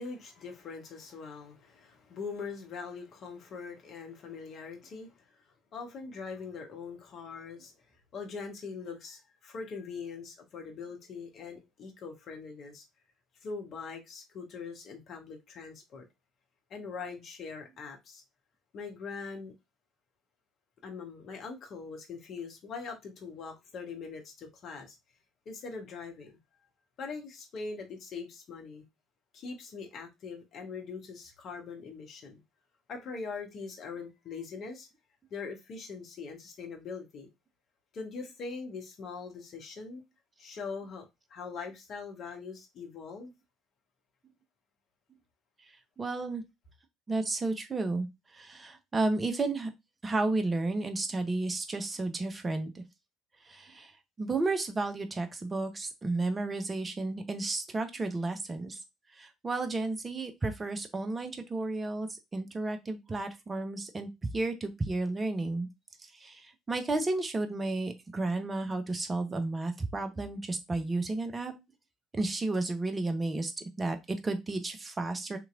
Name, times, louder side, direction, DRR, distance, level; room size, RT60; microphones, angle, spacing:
voice 1, 0.0-5.2 5.7-7.9 8.1-12.8 13.4-16.1 16.7-18.2 18.7-19.5 20.8-25.0 25.5-26.4 27.0-28.8 29.3-32.4 32.9-34.9 35.3-37.3 37.9-40.0 40.4-43.3, left 5 dB, 50° left, 0.9 m, -42 dB
voice 2, 46.0-46.4 47.1-48.1 48.3-49.7 50.0-52.8 53.4-58.8 59.1-65.7 66.1-71.5 72.1-75.4, right 2 dB, 25° right, 0.6 m, -32 dB
3.0 x 2.8 x 2.4 m
figure-of-eight pair, 55°, 0 cm